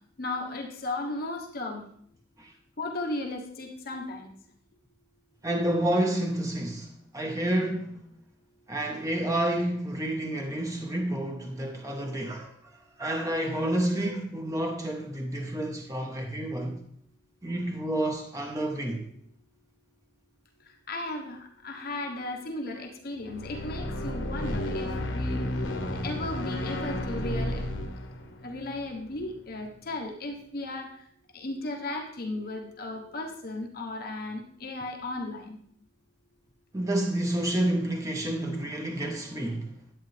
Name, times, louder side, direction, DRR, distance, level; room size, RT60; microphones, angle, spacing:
voice 1, 0.2-1.8 2.8-4.3 20.9-25.6 26.0-27.6 28.4-31.0 31.3-35.6, left 2 dB, 55° left, 1.1 m, -35 dB
voice 2, 5.4-8.0 8.7-12.6 13.0-16.8 17.4-19.0 36.7-39.7, right 1 dB, 15° right, 1.1 m, -29 dB
sound 1, 23.2-29.6, left 1 dB, 75° left, 1.1 m, -32 dB
10.5 x 8.4 x 3.4 m
head